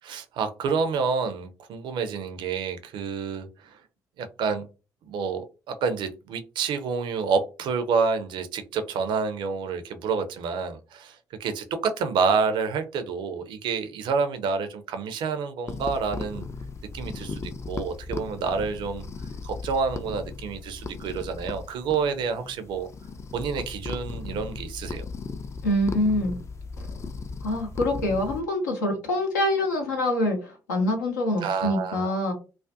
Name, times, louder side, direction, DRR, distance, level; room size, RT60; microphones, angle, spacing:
voice 1, 0.0-3.8 4.2-4.7 5.0-16.5 16.9-19.1 19.4-22.9 23.3-25.1 31.4-32.1, right 5 dB, 55° right, 9 dB, 0.4 m, -28 dB
sound 1, 15.7-28.4, left 4 dB, 30° left, 0.4 m, -37 dB
voice 2, 25.6-26.3 27.4-32.3, left 1 dB, 80° left, 2 dB, 0.6 m, -25 dB
2.3 x 2.1 x 2.5 m, 0.31 s
figure-of-eight pair, 45°, 9 cm